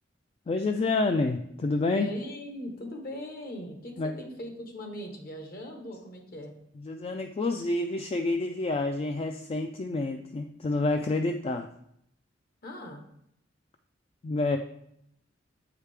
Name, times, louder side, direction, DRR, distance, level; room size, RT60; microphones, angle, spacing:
voice 1, 0.5-2.1 4.0-4.1 6.8-11.7 14.2-14.6, left 2 dB, 30° left, 5 dB, 0.3 m, -28 dB
voice 2, 1.9-6.5 12.6-13.0, left 1 dB, 55° left, 4 dB, 1.1 m, -40 dB
7.4 x 4.9 x 3.3 m, 0.74 s
head